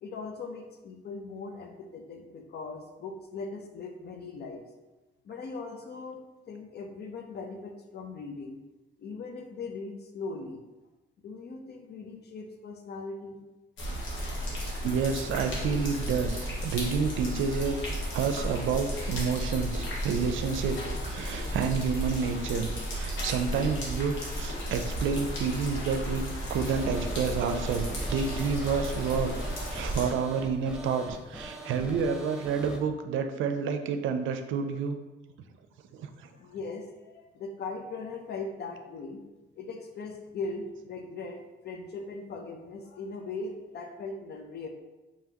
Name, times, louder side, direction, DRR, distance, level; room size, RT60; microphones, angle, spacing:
voice 1, 0.0-4.7 5.2-8.6 9.0-10.6 11.2-13.4 21.3-21.5 36.4-39.2 39.6-44.7, left 3 dB, 55° left, 3 dB, 0.6 m, -39 dB
sound 1, 13.8-30.1, equal, 75° left, 1.2 m, -33 dB
voice 2, 14.8-17.8 18.1-20.8 21.0-26.2 26.5-29.4 29.7-35.0 35.9-36.3, right 6 dB, 75° right, 7 dB, 0.5 m, -29 dB
sound 2, 26.7-32.8, right 1 dB, 5° right, 0.6 m, -42 dB
4.8 x 2.8 x 2.9 m, 1.1 s
cardioid pair, 90°, 20 cm